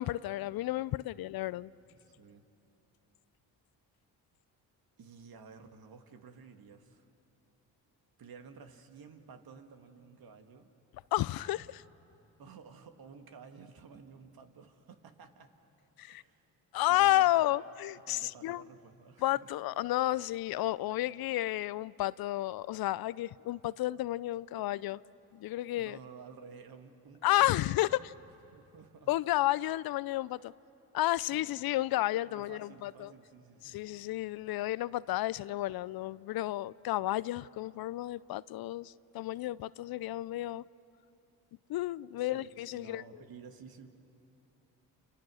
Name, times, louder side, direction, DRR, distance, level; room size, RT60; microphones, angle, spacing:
voice 1, 0.0-1.7 11.1-11.8 16.0-16.2 16.7-18.6 19.2-25.0 25.3-26.0 27.2-27.9 29.1-30.5 30.9-33.1 33.6-40.6 41.7-43.0, left 15 dB, 65° left, 0.5 m, -31 dB
voice 2, 1.9-2.4 5.0-7.1 8.2-10.7 12.4-15.5 16.1-16.5 16.9-17.6 17.9-19.6 25.8-28.2 28.5-29.2 31.2-31.7 32.3-33.8 42.2-43.9, right 5 dB, 60° right, 2.1 m, -53 dB
29.5 x 29.0 x 6.4 m
supercardioid pair, 65°, 40 cm